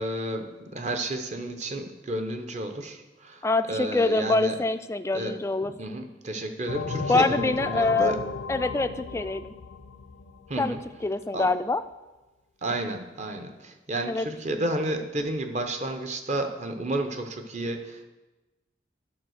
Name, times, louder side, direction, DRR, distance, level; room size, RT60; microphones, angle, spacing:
voice 1, 0.0-4.6 5.1-8.2 10.5-10.8 11.3-11.5 12.6-18.0, right 1 dB, 40° right, 6 dB, 0.9 m, -31 dB
voice 2, 3.4-5.7 7.1-8.1 8.5-9.5 10.6-10.8 11.0-11.8 14.1-14.3, left 3 dB, 15° left, 11 dB, 0.3 m, -25 dB
sound 1, 6.7-11.1, left 4 dB, 80° left, 0.6 m, -35 dB
11.0 x 4.3 x 6.4 m, 1.1 s
head